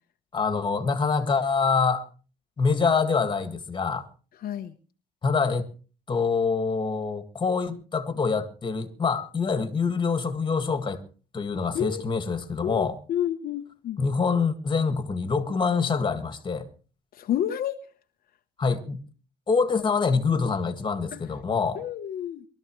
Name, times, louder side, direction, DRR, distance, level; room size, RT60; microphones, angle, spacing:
voice 1, 0.3-2.0 2.6-4.1 5.2-5.7 6.1-11.0 11.3-13.0 14.0-16.7 18.6-19.0 19.5-21.8, left 5 dB, 30° left, 1.9 m, -25 dB
voice 2, 4.4-4.7 11.7-12.0 12.6-14.0 17.1-17.8 21.1-21.2 21.7-22.5, left 10 dB, 60° left, 1.0 m, -30 dB
23.0 x 13.0 x 3.2 m
cardioid pair, 110°, 17 cm